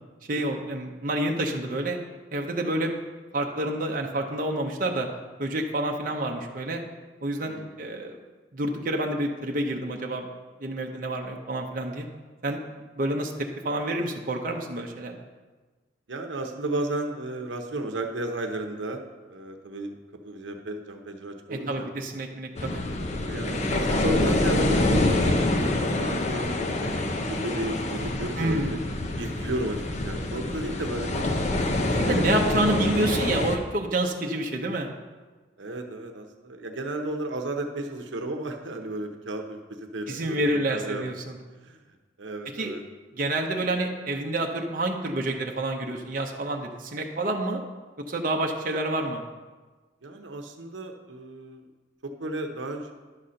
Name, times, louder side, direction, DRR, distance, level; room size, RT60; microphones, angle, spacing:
voice 1, 0.3-2.0 2.3-2.9 3.3-5.1 5.4-6.8 7.2-8.2 8.5-10.3 10.6-12.1 12.4-12.6 12.9-15.2 21.5-22.8 28.4-28.8 32.0-34.9 40.1-41.4 42.6-42.8 43.2-47.6 48.1-49.2, right 1 dB, 50° right, 2 dB, 0.7 m, -28 dB
voice 2, 16.1-19.0 19.3-19.9 20.2-21.9 23.2-25.4 26.0-26.7 27.3-28.8 29.2-31.3 31.9-32.4 32.7-32.8 33.1-33.4 35.6-39.6 39.9-41.1 41.6-41.8 42.2-42.8 50.0-51.6 52.0-52.9, right 1 dB, 90° right, 5 dB, 0.8 m, -33 dB
sound 1, 22.6-33.6, left 1 dB, 40° left, 0.7 m, -26 dB
10.5 x 4.2 x 6.4 m, 1.3 s
head